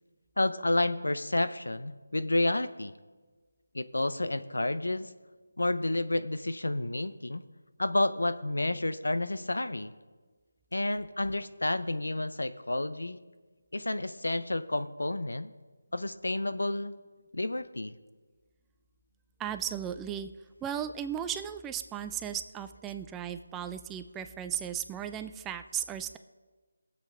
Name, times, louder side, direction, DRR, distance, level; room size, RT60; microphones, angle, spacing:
voice 1, 0.4-2.9 3.7-5.1 5.6-7.4 7.8-9.9 10.7-13.2 13.7-15.5 15.9-16.9 17.3-17.9, left 2 dB, 85° left, 12 dB, 0.7 m, -30 dB
voice 2, 19.4-20.3 20.6-26.2, right 9 dB, 10° right, 9 dB, 0.4 m, -36 dB
19.0 x 7.6 x 3.7 m, 1.3 s
figure-of-eight pair, 165°, 0 cm